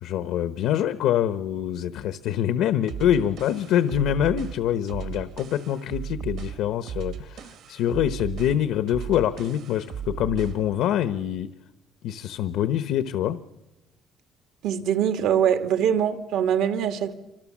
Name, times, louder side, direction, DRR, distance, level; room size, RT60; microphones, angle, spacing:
voice 1, 0.0-11.5 12.0-13.4, left 10 dB, 85° left, 1.0 m, -25 dB
sound 1, 2.9-10.7, right 8 dB, 60° right, 1.5 m, -36 dB
voice 2, 14.6-17.1, right 9 dB, 85° right, 2.2 m, -23 dB
27.5 x 25.5 x 7.4 m
cardioid pair, 170°, 0 cm